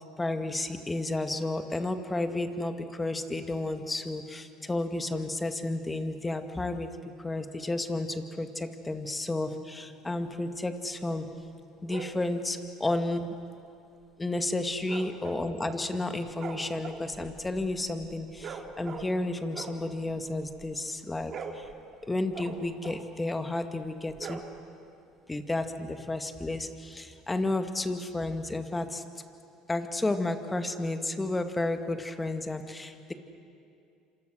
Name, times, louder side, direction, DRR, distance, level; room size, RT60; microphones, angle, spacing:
voice 1, 0.2-6.9 7.2-11.3 11.8-13.3 14.2-21.7 22.1-24.4 25.3-29.0 29.7-33.1, left 2 dB, 15° left, 7 dB, 2.0 m, -32 dB
sound 1, 11.9-12.2 14.8-15.9 16.2-19.2 19.5-20.8 21.1-23.2 24.1-24.9, right 6 dB, 45° right, 2.5 m, -43 dB
29.0 x 26.5 x 6.5 m, 2.5 s
supercardioid pair, 85°, 0 cm